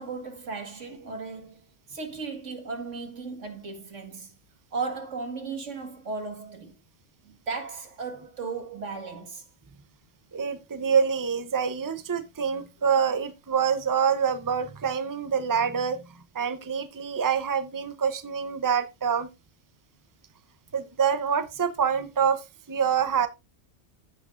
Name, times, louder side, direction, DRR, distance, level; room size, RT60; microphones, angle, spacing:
voice 1, 0.0-4.3 4.7-6.8 7.2-9.5, right 4 dB, 90° right, 2.2 m, -36 dB
voice 2, 10.3-16.0 16.3-19.3 20.7-23.3, right 7 dB, 20° right, 0.7 m, -26 dB
15.5 x 5.8 x 2.5 m
omnidirectional pair, 1.2 m